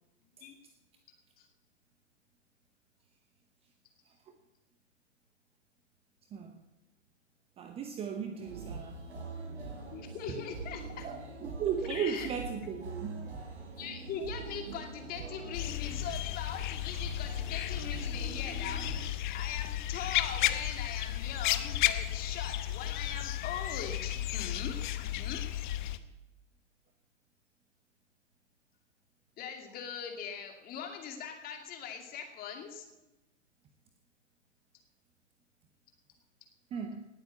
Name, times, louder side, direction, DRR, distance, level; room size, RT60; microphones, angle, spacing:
voice 1, 6.3-6.6 7.6-9.1 10.3-10.4 11.0-13.3 36.7-37.0, right 7 dB, 15° right, 0.8 m, -36 dB
sound 1, 8.4-19.1, right 3 dB, 70° right, 4.1 m, -43 dB
voice 2, 9.9-11.1 11.9-12.3 13.8-25.4 29.4-32.8 36.7-36.8, left 7 dB, 25° left, 2.5 m, -41 dB
sound 2, 15.5-26.0, left 13 dB, 40° left, 0.9 m, -33 dB
19.0 x 8.1 x 7.1 m
figure-of-eight pair, 115°, 37 cm